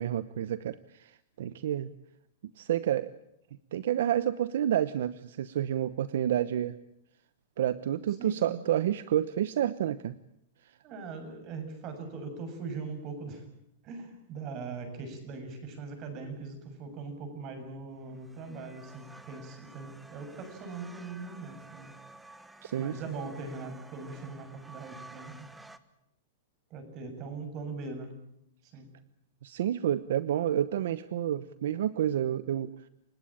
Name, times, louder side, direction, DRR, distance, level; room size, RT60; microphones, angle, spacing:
voice 1, 0.0-1.9 2.6-3.1 3.7-6.8 7.6-10.2 22.6-23.0 29.4-32.7, right 11 dB, 75° right, 15 dB, 0.9 m, -29 dB
voice 2, 8.2-8.6 10.8-13.5 13.8-21.9 22.8-25.5 26.7-28.3 28.6-28.9, right 4 dB, 35° right, 7 dB, 7.1 m, -41 dB
sound 1, 18.1-25.8, right 2 dB, 5° right, 1.3 m, -52 dB
28.5 x 17.0 x 8.8 m, 0.77 s
supercardioid pair, 145°, 0 cm